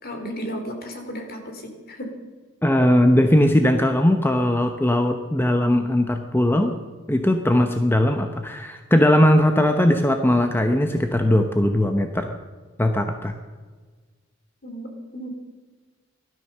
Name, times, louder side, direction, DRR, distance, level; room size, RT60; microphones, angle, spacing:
voice 1, 0.0-2.1 14.6-15.3, equal, 50° left, 4 dB, 3.2 m, -34 dB
voice 2, 2.6-6.7 7.1-12.4 12.8-13.3, left 1 dB, 10° left, 5 dB, 0.8 m, -19 dB
16.0 x 13.0 x 6.7 m, 1.4 s
head